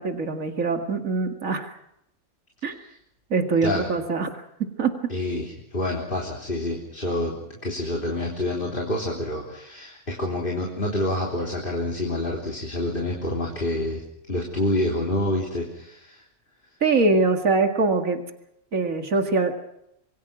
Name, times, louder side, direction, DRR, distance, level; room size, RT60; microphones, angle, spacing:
voice 1, 0.0-1.7 2.6-2.8 3.3-5.1 16.8-18.2 18.7-19.5, right 3 dB, 85° right, 5 dB, 2.5 m, -23 dB
voice 2, 5.1-14.0 14.3-16.2, left 1 dB, 40° left, -1 dB, 3.9 m, -27 dB
27.5 x 22.5 x 6.1 m, 0.81 s
omnidirectional pair, 1.4 m